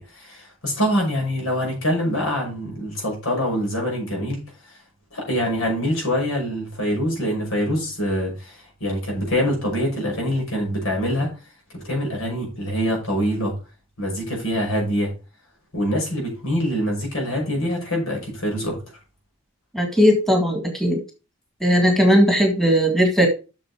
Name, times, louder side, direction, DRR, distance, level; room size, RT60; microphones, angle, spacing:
voice 1, 0.0-4.4 5.1-11.3 11.7-13.6 14.0-15.1 15.7-18.8, equal, 80° left, 6.0 m, -24 dB
voice 2, 19.7-21.0 21.6-23.3, equal, ahead, 1.8 m, -18 dB
7.8 x 6.6 x 4.9 m
head